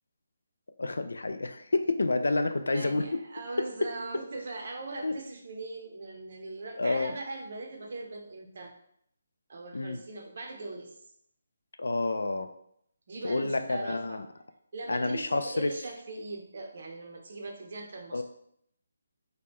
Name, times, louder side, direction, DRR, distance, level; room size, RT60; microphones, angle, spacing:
voice 1, 0.8-3.2 5.0-5.1 6.8-7.1 9.7-10.0 11.8-12.5 13.2-14.2 14.9-15.7 18.1-18.2, left 2 dB, 90° left, 8 dB, 0.3 m, -29 dB
voice 2, 2.7-8.7 9.5-11.0 13.1-14.2 14.7-18.2, right 3 dB, 55° right, 2 dB, 0.6 m, -40 dB
2.9 x 2.2 x 3.5 m, 0.72 s
hypercardioid pair, 165°, 0 cm